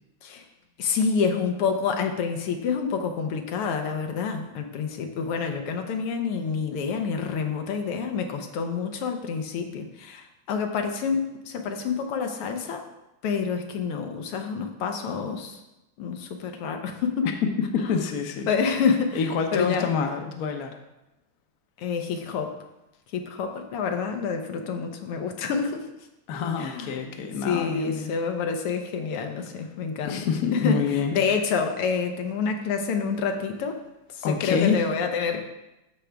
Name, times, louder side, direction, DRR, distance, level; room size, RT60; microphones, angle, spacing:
voice 1, 0.8-12.8 13.2-15.6 16.0-17.3 17.8-17.9 18.5-20.0 21.8-22.6 23.1-25.9 26.6-27.0 27.4-33.8 34.1-35.4, left 5 dB, 90° left, 4 dB, 1.9 m, -28 dB
voice 2, 17.9-18.5 19.1-20.7 26.3-28.1 30.0-31.1 34.2-34.8, left 6 dB, 60° left, 5 dB, 1.0 m, -26 dB
13.5 x 5.0 x 3.4 m, 0.95 s
omnidirectional pair, 2.4 m